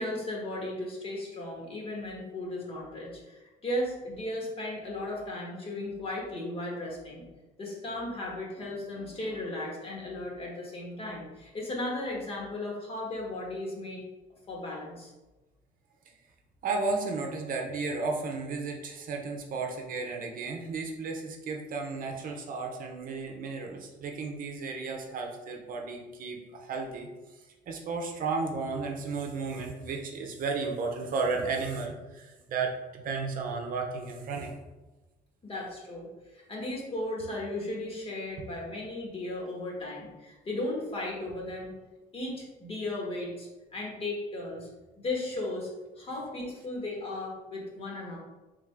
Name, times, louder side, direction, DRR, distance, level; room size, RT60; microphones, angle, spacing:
voice 1, 0.0-7.3 7.6-14.0 14.5-15.1 35.4-41.7 42.1-44.7 45.0-45.7 46.0-48.2, left 1 dB, 35° left, -2 dB, 1.3 m, -36 dB
voice 2, 16.6-27.1 27.7-34.5, right 4 dB, 55° right, 2 dB, 0.7 m, -33 dB
3.6 x 3.4 x 3.3 m, 1.1 s
cardioid pair, 110°, 17 cm